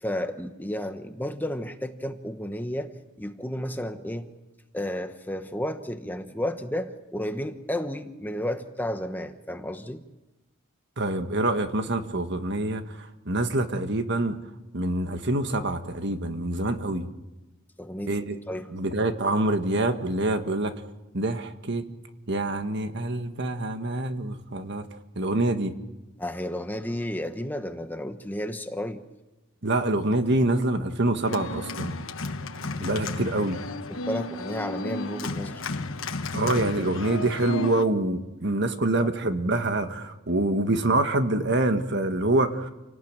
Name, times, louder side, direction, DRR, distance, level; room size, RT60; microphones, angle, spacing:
voice 1, 0.0-2.9 3.2-4.3 4.7-10.0 17.8-18.1 18.5-18.7 26.2-29.0 33.9-35.6, left 1 dB, 10° left, 7 dB, 1.1 m, -32 dB
voice 2, 11.0-14.4 14.7-17.1 18.1-18.4 18.7-20.8 21.1-21.8 22.3-24.8 25.1-25.7 29.6-32.0 32.8-33.6 36.3-42.7, right 2 dB, 55° right, 8 dB, 1.6 m, -26 dB
Organ, 31.2-37.9, left 2 dB, 65° left, 1.3 m, -33 dB
28.5 x 18.5 x 8.9 m, 1.1 s
head